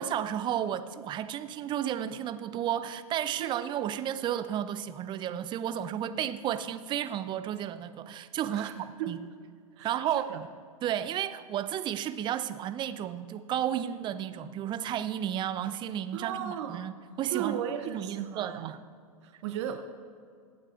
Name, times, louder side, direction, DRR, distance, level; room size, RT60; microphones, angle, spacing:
voice 1, 0.0-9.2 9.8-10.3 10.8-16.9 17.2-17.6 17.9-18.9, right 10 dB, 25° right, 12 dB, 0.6 m, -32 dB
voice 2, 3.4-3.7 8.5-8.7 9.0-9.2 9.8-10.5 16.1-16.9 17.3-18.8 19.2-19.8, right 10 dB, 50° right, 7 dB, 0.8 m, -36 dB
23.5 x 8.8 x 2.5 m, 2.3 s
figure-of-eight pair, 105°, 19 cm